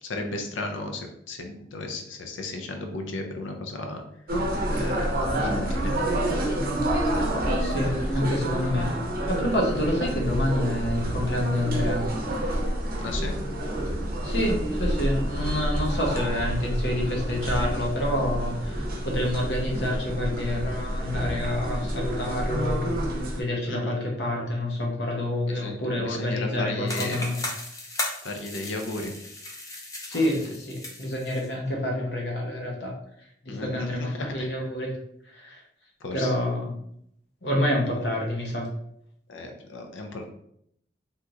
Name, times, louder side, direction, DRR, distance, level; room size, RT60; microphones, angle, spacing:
voice 1, 0.0-4.0 4.7-5.9 13.0-13.4 23.7-24.0 25.5-27.3 28.2-29.1 33.5-34.5 36.0-36.3 39.3-40.3, left 2 dB, 90° left, 4 dB, 0.5 m, -35 dB
sound 1, 4.3-23.4, right 1 dB, 50° right, 0.6 m, -28 dB
voice 2, 7.6-8.9 9.3-12.0 14.2-22.9 23.3-27.4 30.0-32.9 33.4-34.9 35.3-35.6 36.1-36.8 37.4-38.7, left 1 dB, 65° left, -1 dB, 0.8 m, -28 dB
sound 2, 26.9-31.5, left 1 dB, 20° left, 0.4 m, -36 dB
3.5 x 2.8 x 2.4 m, 0.72 s
head